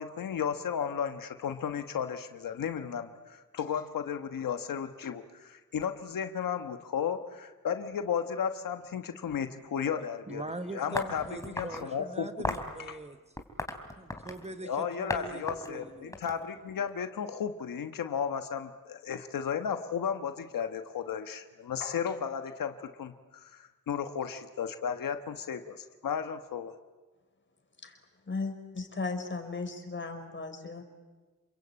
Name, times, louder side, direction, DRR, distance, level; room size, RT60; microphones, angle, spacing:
voice 1, 0.0-10.4 10.7-12.5 12.9-13.0 14.6-26.7, left 7 dB, 85° left, 1.3 m, -34 dB
voice 2, 9.9-13.2 14.0-16.2, right 2 dB, 20° right, 1.3 m, -42 dB
sound 1, 10.9-11.8 12.4-12.7 13.4-14.5 15.1-15.2 15.5-16.9, left 1 dB, 10° left, 3.5 m, -35 dB
voice 3, 28.3-30.8, left 3 dB, 35° left, 4.9 m, -36 dB
28.5 x 22.0 x 8.8 m
cardioid pair, 75°, 32 cm